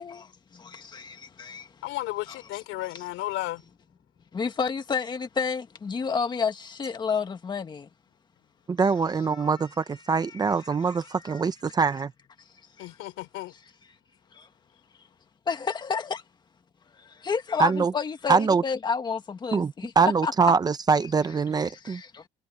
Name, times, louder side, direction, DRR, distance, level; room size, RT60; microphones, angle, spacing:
voice 1, 0.0-1.7 2.3-2.4 2.9-3.1 4.3-7.9 9.2-9.6 10.1-10.6 11.0-11.4 12.8-12.9 13.5-13.6 14.3-14.5 15.5-16.2 17.0-19.9 20.2-20.3 21.6-22.3, left 5 dB, 20° left, 1.6 m, -31 dB
voice 2, 1.8-3.6 12.8-13.5, left 17 dB, 85° left, 3.3 m, -33 dB
voice 3, 8.7-12.1 17.6-17.9 18.3-18.6 19.5-22.0, right 5 dB, 20° right, 0.6 m, -23 dB
cardioid pair, 175°, 20 cm